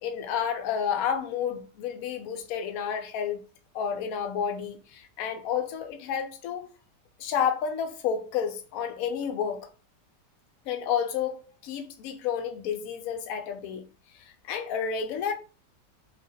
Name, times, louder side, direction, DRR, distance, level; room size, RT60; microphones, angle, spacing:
voice 1, 0.0-3.5 3.7-6.7 7.2-9.7 10.7-13.8 14.2-15.3, left 7 dB, 70° left, 0.9 m, -30 dB
2.8 x 2.4 x 2.7 m
omnidirectional pair, 1.8 m